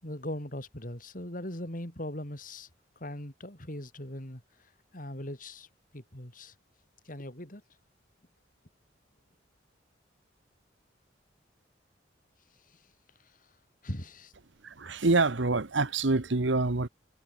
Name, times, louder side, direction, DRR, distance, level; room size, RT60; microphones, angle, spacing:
voice 1, 0.0-2.7 3.0-4.4 4.9-5.7 5.9-6.5 7.1-7.6 12.7-12.8 13.8-14.3, left 1 dB, 45° left, 5.3 m, -39 dB
voice 2, 14.6-16.9, right 3 dB, 85° right, 1.2 m, -26 dB
head